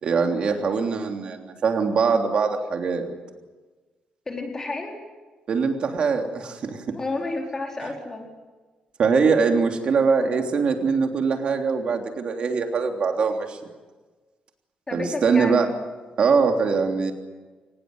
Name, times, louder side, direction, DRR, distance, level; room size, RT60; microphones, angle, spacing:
voice 1, 0.0-3.0 5.5-7.0 9.0-13.6 14.9-15.7 16.2-17.1, right 5 dB, 50° right, 4 dB, 3.3 m, -22 dB
voice 2, 4.3-5.1 6.9-8.3 14.9-15.7, left 2 dB, 20° left, 1 dB, 4.4 m, -31 dB
24.0 x 20.0 x 9.7 m, 1.3 s
wide cardioid pair, 170°, 2 cm